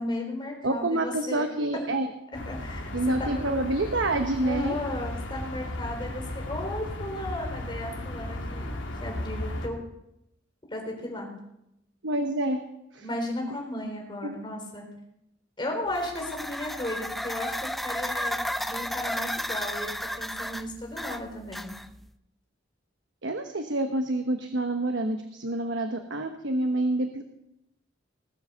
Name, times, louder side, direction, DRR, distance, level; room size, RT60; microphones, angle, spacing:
voice 1, 0.0-1.5 1.7-1.9 2.3-2.9 3.2-3.5 4.4-8.7 9.0-9.8 10.7-11.3 13.0-14.8 15.6-21.7, left 1 dB, 25° left, 1 dB, 3.9 m, -35 dB
voice 2, 0.6-2.1 2.9-4.7 12.0-12.6 12.9-13.0 14.2-14.4 23.2-27.2, right 2 dB, 70° right, 6 dB, 1.1 m, -27 dB
sound 1, 2.3-9.7, left 1 dB, 90° left, 2.5 m, -35 dB
sound 2, 15.9-22.1, equal, ahead, 0.5 m, -33 dB
19.0 x 8.1 x 6.9 m, 0.82 s
head